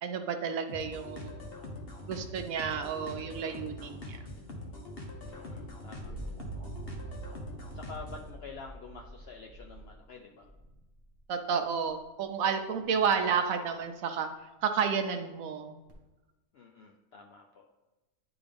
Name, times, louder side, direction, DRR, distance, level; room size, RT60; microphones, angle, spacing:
voice 1, 0.0-1.4 2.1-4.2 11.3-14.3 14.6-15.7, right 6 dB, 70° right, 7 dB, 1.0 m, -31 dB
sound 1, 0.7-8.3, left 1 dB, 45° left, 1.0 m, -43 dB
voice 2, 5.3-6.4 7.7-10.5 16.5-17.7, left 4 dB, 70° left, 1 dB, 0.6 m, -48 dB
sound 2, 5.3-11.2 12.8-13.3 15.9-16.0, right 2 dB, 15° right, 1.1 m, -45 dB
9.6 x 3.6 x 3.4 m, 1.1 s
omnidirectional pair, 1.6 m